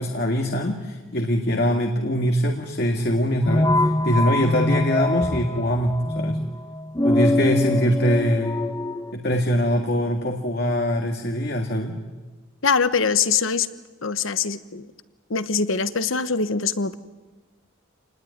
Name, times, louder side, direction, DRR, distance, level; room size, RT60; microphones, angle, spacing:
voice 1, 0.0-6.4 7.0-8.6 9.1-12.0, equal, 50° left, 3 dB, 1.9 m, -23 dB
sound 1, 3.5-9.1, left 1 dB, 15° left, 0.8 m, -24 dB
voice 2, 12.6-13.7 14.0-14.9 15.3-17.0, left 5 dB, 80° left, 13 dB, 1.2 m, -23 dB
28.0 x 20.0 x 9.6 m, 1.3 s
head